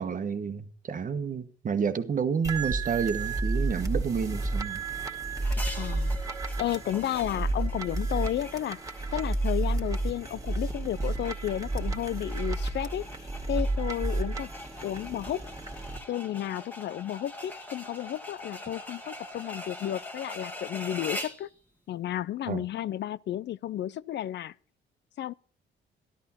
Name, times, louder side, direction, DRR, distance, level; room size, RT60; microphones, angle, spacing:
voice 1, 0.0-4.8 22.5-22.6, right 6 dB, 40° right, 1.3 m, -30 dB
sound 1, 2.4-16.0, right 2 dB, 15° right, 2.0 m, -31 dB
sound 2, 5.4-21.5, left 1 dB, 10° left, 1.7 m, -43 dB
voice 2, 5.8-6.1 6.6-8.8 9.1-14.5 14.8-15.4 16.1-21.5 21.9-24.5 25.2-25.3, left 12 dB, 60° left, 0.5 m, -32 dB
13.0 x 12.0 x 4.3 m
cardioid pair, 90°, 20 cm